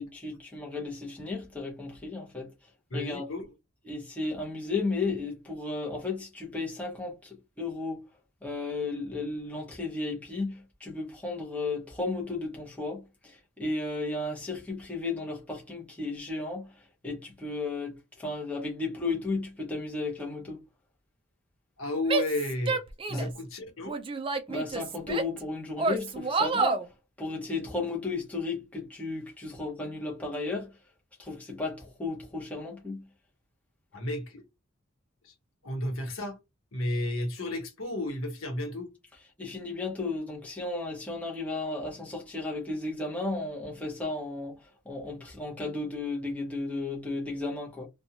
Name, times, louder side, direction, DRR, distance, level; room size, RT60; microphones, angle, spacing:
voice 1, 0.0-2.5 2.9-3.3 3.9-8.0 8.4-13.0 13.6-16.7 17.0-20.6 23.1-23.3 24.5-26.8 27.2-30.7 31.2-33.0 39.4-44.6 44.9-47.9, left 3 dB, 5° left, 0.7 m, -34 dB
voice 2, 2.9-3.5 21.8-22.8 23.1-23.9 33.9-34.4 35.2-35.3 35.6-36.4 36.7-38.9, left 1 dB, 75° left, 1.0 m, -32 dB
Female speech woman speaking / Yell, 22.1-23.4 23.9-25.4 25.8-26.9, right 4 dB, 25° right, 0.3 m, -29 dB
2.8 x 2.2 x 2.7 m
head